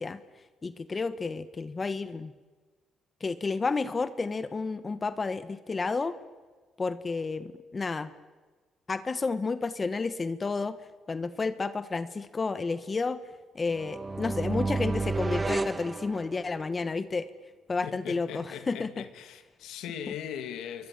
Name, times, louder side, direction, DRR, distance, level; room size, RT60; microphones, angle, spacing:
voice 1, 0.0-2.3 3.2-6.1 6.8-8.1 8.9-10.8 11.1-13.2 13.5-17.3 17.7-19.0, left 4 dB, 30° left, 1.2 m, -31 dB
sound 1, 13.7-16.8, right 3 dB, 25° right, 1.0 m, -31 dB
voice 2, 17.8-20.9, left 9 dB, 85° left, 2.1 m, -39 dB
28.0 x 23.0 x 7.5 m
cardioid pair, 90°, 0 cm